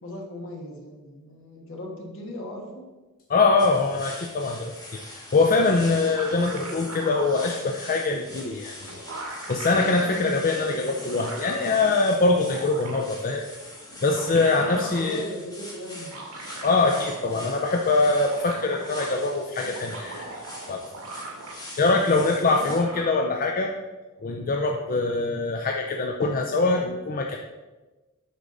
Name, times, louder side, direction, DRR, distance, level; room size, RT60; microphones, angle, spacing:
voice 1, 0.0-2.9 14.6-16.2 22.5-22.8, left 1 dB, 65° left, 0 dB, 1.7 m, -38 dB
voice 2, 3.3-5.0 5.3-13.4 14.0-15.3 16.6-20.4 20.7-20.8 21.8-23.8 24.2-27.4, left 3 dB, 40° left, 2 dB, 0.5 m, -23 dB
sound 1, 3.6-22.8, left 1 dB, 20° left, 2.3 m, -43 dB
sound 2, 5.8-7.5 8.5-8.6 8.8-10.2 10.9-11.7 12.2-13.2 13.9-15.1 16.0-17.4 17.7-17.8 18.0-19.2 19.6-21.8 22.1-23.1, right 2 dB, 75° right, 2.0 m, -39 dB
8.2 x 6.1 x 4.0 m, 1.2 s
head